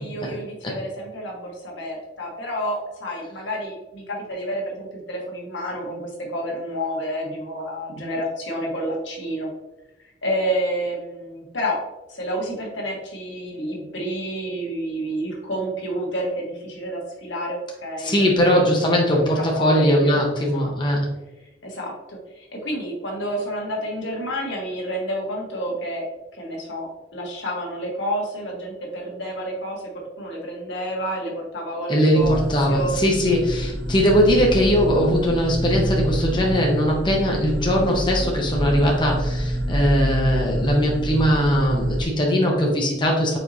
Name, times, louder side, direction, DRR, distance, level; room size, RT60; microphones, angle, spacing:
voice 1, 0.0-9.5 10.0-11.8 12.1-18.6 19.1-20.7 21.6-26.0 26.3-29.9 30.2-33.0 33.3-33.4, equal, 85° left, -1 dB, 1.3 m, -29 dB
voice 2, 18.0-21.1 31.9-43.4, equal, 25° left, -1 dB, 0.7 m, -20 dB
sound 1, 32.2-42.0, right 1 dB, 75° right, 0.7 m, -27 dB
4.8 x 3.9 x 2.7 m, 1.0 s
head